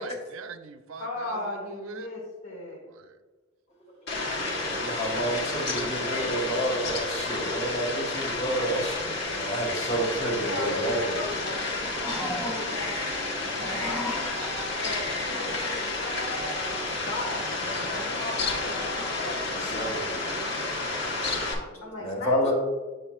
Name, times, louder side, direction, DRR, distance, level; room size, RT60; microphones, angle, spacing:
voice 1, 0.0-2.1 2.9-3.1, right 5 dB, 80° right, 9 dB, 0.5 m, -43 dB
voice 2, 1.0-2.8 10.4-14.3 14.8-16.4 16.9-19.2 21.8-22.5, left 1 dB, 90° left, -3 dB, 1.2 m, -37 dB
Fowl, 4.1-21.5, left 2 dB, 55° left, 1.1 m, -31 dB
voice 3, 4.5-11.2 13.5-13.6 14.9-15.0 19.5-20.3 21.7-22.5, equal, 35° left, -1 dB, 1.4 m, -30 dB
sound 1, 11.5-12.9 13.4-15.0, left 1 dB, 5° left, 1.6 m, -36 dB
7.5 x 6.6 x 2.3 m, 1.3 s
head